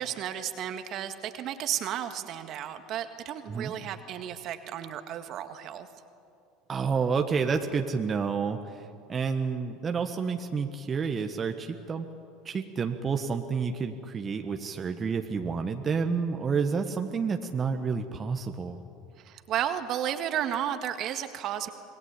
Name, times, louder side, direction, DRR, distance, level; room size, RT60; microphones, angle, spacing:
voice 1, 0.0-5.9 19.2-21.7, right 10 dB, 50° right, 8 dB, 1.8 m, -33 dB
voice 2, 6.7-12.1 12.4-18.8, right 5 dB, 30° right, 5 dB, 1.5 m, -29 dB
26.5 x 20.5 x 8.5 m, 2.5 s
hypercardioid pair, 75°, 0 cm